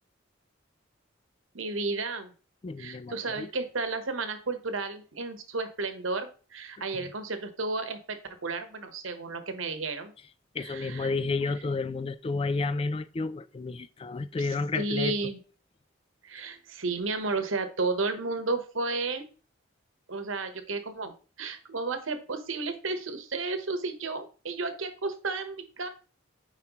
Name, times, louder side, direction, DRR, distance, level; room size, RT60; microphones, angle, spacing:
voice 1, 1.5-2.3 2.8-10.1 10.6-11.1 14.4-14.5 14.8-15.4 16.2-19.3 20.1-25.9, right 3 dB, 85° right, 1.1 m, -32 dB
voice 2, 2.6-3.5 6.9-7.1 10.5-15.2, left 3 dB, 30° left, 0.3 m, -31 dB
9.2 x 4.5 x 3.0 m
head